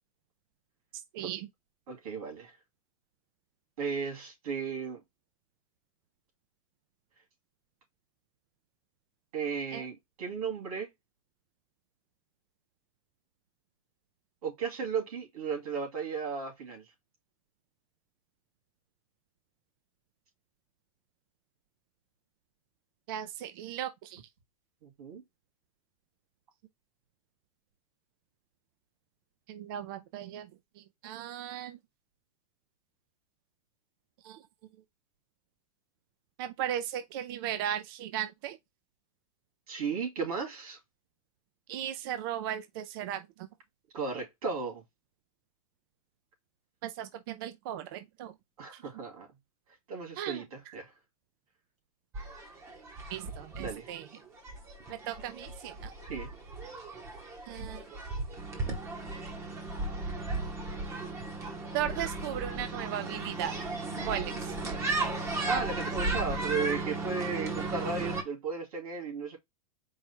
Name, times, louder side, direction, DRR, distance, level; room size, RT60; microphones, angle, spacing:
voice 1, 1.1-1.5 9.7-9.8 23.1-24.2 29.5-30.5 31.0-31.8 34.2-34.4 36.4-38.6 41.7-43.5 46.8-48.3 48.7-48.8 50.2-50.4 53.1-54.1 54.9-55.9 57.5-57.8 61.7-63.5 64.1-64.6, right 11 dB, 40° right, 0.4 m, -36 dB
voice 2, 1.9-2.5 3.8-5.0 9.3-10.9 14.4-16.8 24.8-25.2 39.7-40.8 43.9-44.8 48.6-49.3 49.9-50.9 53.6-53.9 56.0-56.3 65.5-69.4, right 5 dB, 90° right, 2.9 m, -35 dB
sound 1, 52.1-68.2, right 2 dB, 15° right, 0.9 m, -35 dB
4.7 x 2.3 x 4.2 m
supercardioid pair, 170°, 18 cm